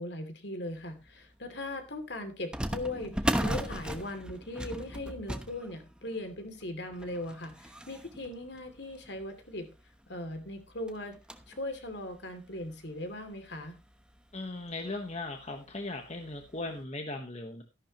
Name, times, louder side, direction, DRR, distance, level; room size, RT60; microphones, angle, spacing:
voice 1, 0.0-9.7 10.1-11.2 11.5-13.8, left 1 dB, 60° left, 7 dB, 2.7 m, -39 dB
sound 1, 1.1-1.2 2.5-9.5 10.0-10.1 10.4-10.5 10.9-11.6 12.1-12.2 13.1-13.2 13.5-13.7 15.0-15.3 15.7-15.8 16.4-16.6, equal, 5° right, 1.0 m, -36 dB
voice 2, 14.3-17.6, left 2 dB, 35° left, 4 dB, 1.3 m, -38 dB
13.5 x 11.0 x 3.0 m, 0.28 s
head